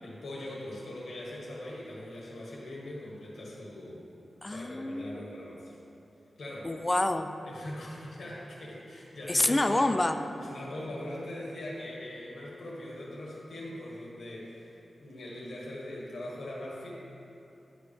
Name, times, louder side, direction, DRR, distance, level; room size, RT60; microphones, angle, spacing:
voice 1, 0.0-4.1 4.5-5.8 6.4-6.7 7.4-9.9 10.4-16.9, left 1 dB, 70° left, -5 dB, 1.8 m, -41 dB
voice 2, 4.4-5.2 6.6-7.3 9.3-10.2, left 2 dB, 20° left, 8 dB, 0.3 m, -27 dB
10.5 x 4.8 x 3.4 m, 2.8 s
wide cardioid pair, 135°, 0 cm